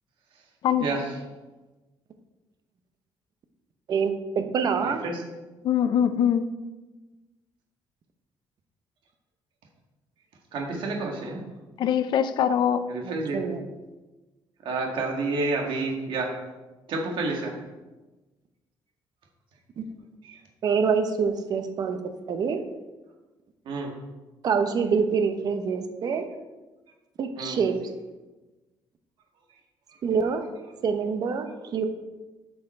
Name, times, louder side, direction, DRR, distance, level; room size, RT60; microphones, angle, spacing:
voice 1, 0.8-1.1 4.8-5.2 10.5-11.4 12.9-13.4 14.6-16.3 16.9-17.5 20.2-20.4 23.7-23.9 27.4-27.6, right 3 dB, 65° right, 0 dB, 1.7 m, -29 dB
voice 2, 3.9-5.0 13.0-13.6 19.8-19.9 20.6-22.0 22.3-22.6 24.4-26.3 27.2-27.8 30.0-30.4 30.8-31.8, right 6 dB, 45° right, 7 dB, 0.8 m, -26 dB
voice 3, 5.6-6.5 11.8-12.8, left 9 dB, 55° left, 11 dB, 0.5 m, -22 dB
8.6 x 5.6 x 4.4 m, 1.2 s
cardioid pair, 155°, 9 cm